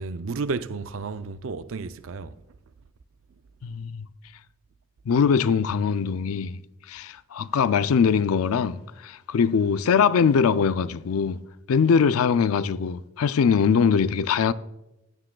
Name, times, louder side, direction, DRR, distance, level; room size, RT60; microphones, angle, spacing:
voice 1, 0.0-2.4, right 4 dB, 70° right, 0.5 m, -32 dB
voice 2, 3.6-4.1 5.1-6.6 6.9-11.4 11.7-14.5, left 6 dB, 85° left, 0.4 m, -22 dB
15.0 x 9.9 x 2.3 m
head